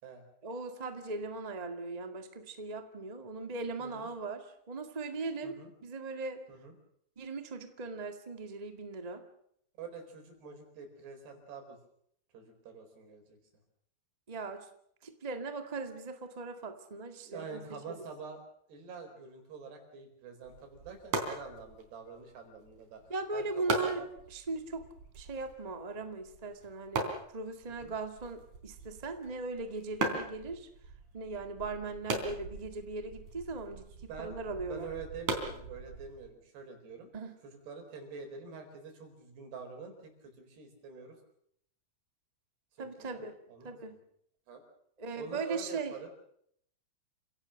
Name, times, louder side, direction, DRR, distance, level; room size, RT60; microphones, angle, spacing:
voice 1, 0.4-6.4 7.2-9.2 14.3-14.7 15.0-17.6 23.1-24.0 24.3-24.8 25.1-30.7 31.1-33.9 34.2-34.9 37.1-37.4 42.8-43.4 43.6-44.0 45.0-46.1, right 3 dB, 35° right, 6 dB, 0.6 m, -39 dB
voice 2, 9.8-11.8 12.3-13.4 17.2-18.4 18.7-24.1 27.7-27.9 34.1-34.4 34.6-37.1 37.4-41.2 42.8-43.2 43.5-44.0 44.5-44.6 45.1-46.1, right 5 dB, 85° right, 4 dB, 6.4 m, -46 dB
sound 1, 20.4-36.3, right 3 dB, 50° right, 4.8 m, -40 dB
29.0 x 17.5 x 6.5 m, 0.70 s
omnidirectional pair, 4.6 m